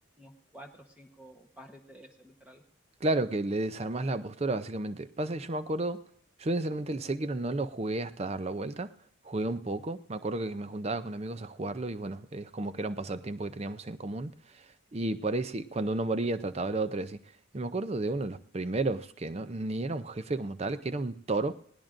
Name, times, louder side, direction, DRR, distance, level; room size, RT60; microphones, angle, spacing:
voice 1, 0.2-2.6, right 1 dB, 5° right, 3 dB, 1.0 m, -51 dB
voice 2, 3.0-6.0 6.4-8.9 9.2-14.7 14.9-17.2 17.5-21.6, right 2 dB, 30° right, 13 dB, 0.5 m, -32 dB
19.5 x 18.0 x 2.6 m, 0.66 s
head